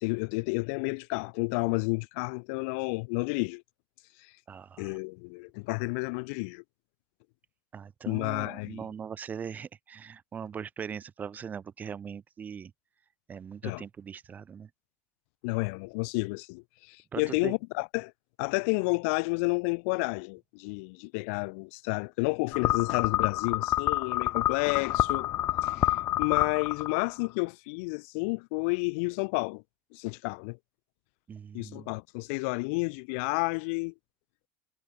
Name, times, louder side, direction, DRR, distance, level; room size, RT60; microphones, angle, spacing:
voice 1, 0.0-3.6 4.8-6.6 8.1-8.8 13.6-13.8 15.4-18.1 18.4-25.3 25.6-29.6 29.9-30.6 31.5-33.9, left 32 dB, 75° left, 0.8 m, -31 dB
voice 2, 4.5-5.0 7.7-12.7 13.3-14.7 17.1-17.5 31.3-31.9, right 7 dB, 25° right, 1.3 m, -40 dB
sound 1, 22.5-27.3, left 14 dB, 40° left, 0.4 m, -28 dB
cardioid pair, 150°, 7 cm